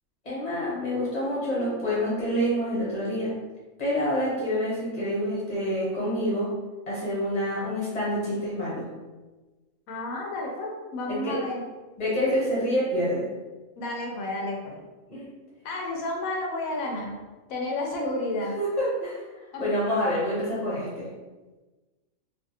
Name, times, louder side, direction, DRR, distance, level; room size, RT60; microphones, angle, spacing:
voice 1, 0.2-3.3 3.8-6.5 6.9-8.8 11.1-11.3 12.0-13.3 15.1-15.3 18.6-19.2 19.6-21.1, equal, 30° left, -7 dB, 1.1 m, -27 dB
voice 2, 9.9-11.6 13.8-14.8 15.6-17.2 17.5-18.5 19.5-19.7, left 2 dB, 90° left, -1 dB, 1.0 m, -31 dB
2.8 x 2.5 x 2.6 m, 1.2 s
omnidirectional pair, 1.4 m